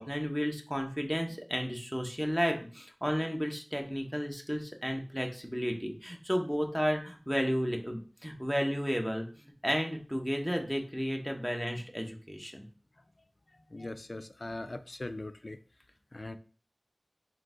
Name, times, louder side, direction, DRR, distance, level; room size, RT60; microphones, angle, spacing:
voice 1, 0.0-12.6, equal, 5° right, 3 dB, 0.8 m, -33 dB
voice 2, 13.7-15.6 16.1-16.4, left 2 dB, 65° left, 10 dB, 0.3 m, -40 dB
3.7 x 2.6 x 3.7 m, 0.40 s
wide cardioid pair, 45°, 0 cm